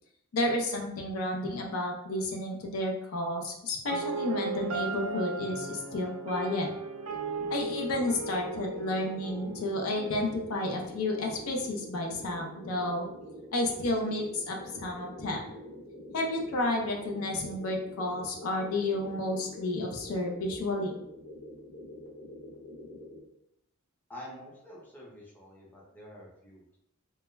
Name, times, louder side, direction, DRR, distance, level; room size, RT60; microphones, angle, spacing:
voice 1, 0.3-6.7 7.5-13.1 13.5-15.4 16.1-21.0, left 1 dB, 70° left, 1 dB, 0.4 m, -31 dB
sound 1, 3.9-11.9, right 3 dB, 75° right, 0.4 m, -37 dB
sound 2, 7.3-23.2, left 1 dB, 50° left, 0.8 m, -46 dB
voice 2, 24.1-26.8, left 1 dB, 10° left, -5 dB, 0.6 m, -48 dB
2.2 x 2.0 x 3.1 m, 0.77 s
head